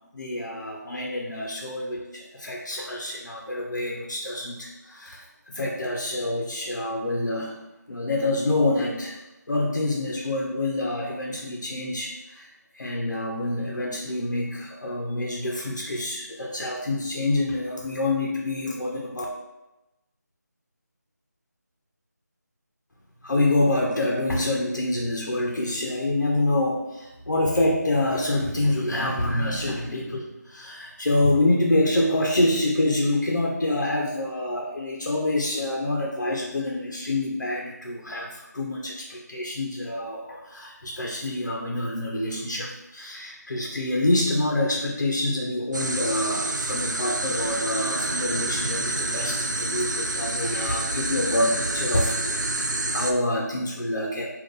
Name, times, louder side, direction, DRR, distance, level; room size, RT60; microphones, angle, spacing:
voice 1, 0.1-7.6 7.9-9.2 9.5-19.2 23.2-54.3, left 1 dB, 85° left, -2 dB, 0.8 m, -26 dB
sound 1, 45.7-53.1, right 2 dB, 85° right, 0.5 m, -28 dB
3.7 x 2.5 x 3.9 m, 0.99 s
figure-of-eight pair, 170°, 10 cm